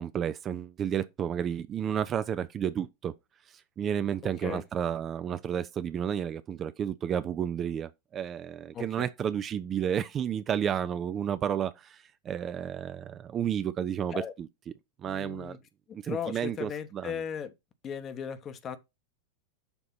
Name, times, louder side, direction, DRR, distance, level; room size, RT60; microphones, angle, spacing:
voice 1, 0.0-3.1 3.5-14.5 15.0-15.6 15.9-17.2, right 9 dB, 25° right, 0.4 m, -32 dB
voice 2, 4.2-4.6 8.7-8.8 14.1-14.3 15.0-15.6 16.0-17.5 17.8-18.8, left 7 dB, 25° left, 0.9 m, -37 dB
7.0 x 2.9 x 5.6 m
figure-of-eight pair, 90°, 0 cm